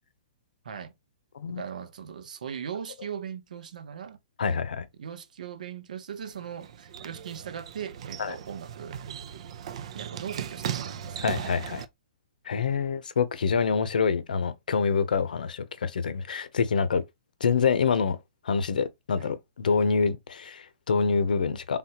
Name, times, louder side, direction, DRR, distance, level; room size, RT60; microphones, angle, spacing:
voice 1, 1.5-4.2 4.5-4.6 5.0-9.0 9.9-11.3 19.2-19.3, right 8 dB, 70° right, 1.0 m, -39 dB
voice 2, 4.4-4.9 8.2-8.3 11.2-11.8 12.4-17.0 17.4-18.2 18.4-21.8, left 5 dB, 85° left, 0.9 m, -26 dB
sound 1, 6.2-11.9, right 9 dB, 50° right, 0.5 m, -37 dB
4.1 x 3.6 x 2.9 m
hypercardioid pair, 170°, 4 cm